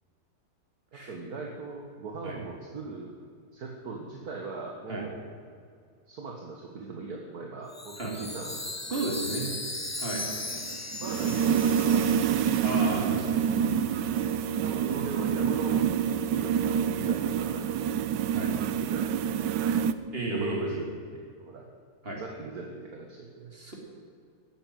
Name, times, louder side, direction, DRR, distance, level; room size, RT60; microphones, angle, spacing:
voice 1, 0.9-3.1 3.5-5.2 6.1-9.0 11.0-12.4 14.6-18.0 18.8-20.0 20.2-20.8 21.1-21.7 22.2-23.5, right 3 dB, 60° right, 0 dB, 1.9 m, -40 dB
Chime, 7.7-13.2, left 2 dB, 20° left, 0.4 m, -38 dB
voice 2, 8.9-9.5 10.0-10.3 12.6-13.6 18.3-18.5 20.1-20.9 22.0-22.2 23.5-23.7, right 2 dB, 30° right, -1 dB, 3.6 m, -33 dB
sound 1, 10.3-19.9, right 8 dB, 80° right, 1.3 m, -27 dB
15.5 x 9.4 x 9.2 m, 2.3 s
omnidirectional pair, 1.9 m